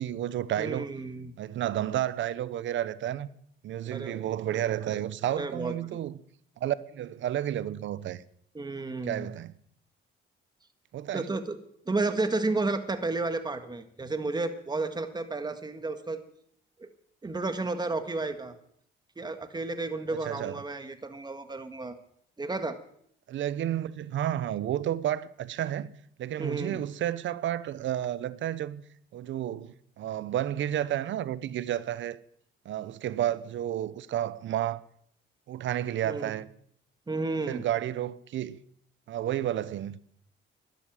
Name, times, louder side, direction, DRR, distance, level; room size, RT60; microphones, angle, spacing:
voice 1, 0.0-0.9 1.4-3.3 3.6-6.2 6.6-8.2 9.0-9.5 10.9-11.3 20.2-20.6 23.3-25.9 26.2-28.8 29.1-32.2 32.6-34.8 35.5-36.5 37.5-38.6 39.1-40.0, right 11 dB, 70° right, 0.8 m, -31 dB
voice 2, 0.6-1.3 3.9-4.2 4.8-5.0 5.3-5.7 8.5-9.3 11.1-11.6 11.9-16.2 16.8-16.9 17.2-18.5 19.2-21.9 22.4-22.8 26.4-26.8 36.0-36.4 37.1-37.6, right 3 dB, 20° right, 1.7 m, -32 dB
12.0 x 11.5 x 7.6 m
cardioid pair, 90°, 20 cm